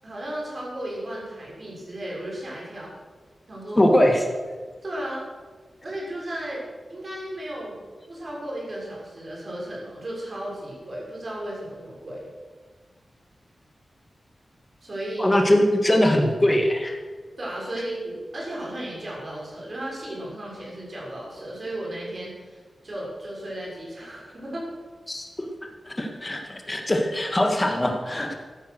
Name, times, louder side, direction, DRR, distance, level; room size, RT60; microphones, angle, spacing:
voice 1, 0.0-2.9 3.5-3.9 4.8-5.2 5.8-7.8 8.1-12.3 14.8-15.3 17.4-24.7, right 1 dB, 40° right, -4 dB, 6.6 m, -34 dB
voice 2, 3.8-4.2 15.2-17.0 25.1-25.3 25.9-28.3, left 1 dB, 20° left, 3 dB, 2.2 m, -21 dB
14.5 x 13.5 x 6.5 m, 1.5 s
wide cardioid pair, 145°, 0 cm